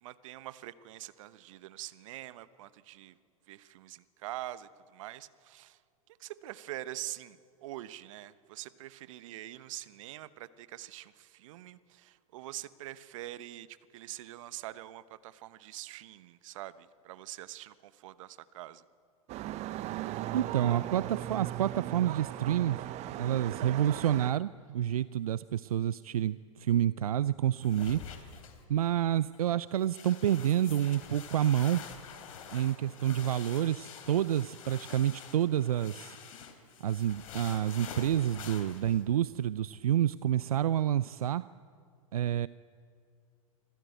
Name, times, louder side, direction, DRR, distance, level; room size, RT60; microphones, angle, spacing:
voice 1, 0.0-3.2 3.5-5.8 6.2-18.8, right 15 dB, 65° right, 15 dB, 1.0 m, -44 dB
sound 1, 19.3-24.3, right 14 dB, 40° right, 0.7 m, -37 dB
voice 2, 20.3-22.8 23.2-28.2 28.7-31.8 32.5-36.2 36.8-41.5 42.1-42.5, right 11 dB, 85° right, 17 dB, 0.5 m, -29 dB
sound 2, 27.6-28.9 29.3-29.4 29.8-39.0, left 7 dB, 70° left, 3.3 m, -47 dB
25.5 x 14.0 x 9.2 m, 2.2 s
hypercardioid pair, 105°, 18 cm